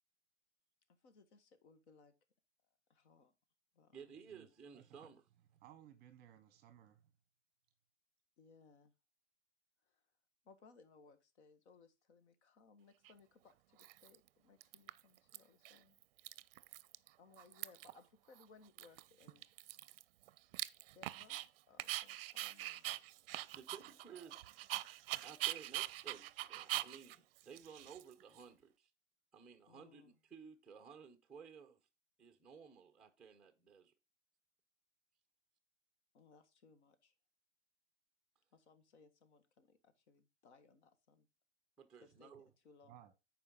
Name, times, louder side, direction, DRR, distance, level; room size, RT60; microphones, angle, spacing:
voice 1, 1.0-2.1 2.9-3.3 3.7-4.4 8.4-8.9 9.9-10.0 10.5-16.0 17.2-19.5 21.0-21.4 21.7-22.9 29.7-30.2 36.1-37.1 38.5-41.3 42.0-43.0, left 4 dB, 70° left, 1.6 m, -65 dB
voice 2, 3.9-5.2 23.5-24.5 25.2-28.9 29.3-31.8 32.2-33.9 41.8-42.5, right 6 dB, ahead, 0.5 m, -56 dB
voice 3, 5.6-7.0 42.8-43.1, right 11 dB, 25° right, 0.9 m, -60 dB
Dog, 13.1-13.2 13.8-14.3 14.6-15.4 15.7-17.1 17.3-18.0 18.4-18.5 18.8-21.5 21.8-28.4, right 16 dB, 55° right, 0.5 m, -43 dB
11.0 x 4.6 x 3.7 m
supercardioid pair, 145°, 35 cm